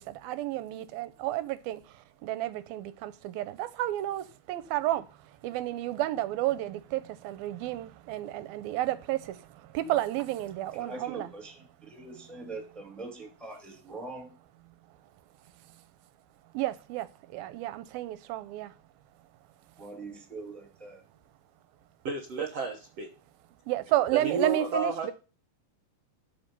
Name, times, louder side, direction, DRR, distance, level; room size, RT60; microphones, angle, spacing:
voice 1, 0.0-11.3 15.6-15.8 16.5-18.8 23.7-25.1, right 14 dB, 85° right, 2.7 m, -32 dB
voice 2, 10.7-14.4 19.8-21.0, right 3 dB, ahead, 2.0 m, -43 dB
voice 3, 22.1-23.1 24.1-25.1, right 4 dB, 60° right, 1.9 m, -31 dB
13.0 x 5.1 x 5.5 m
omnidirectional pair, 4.2 m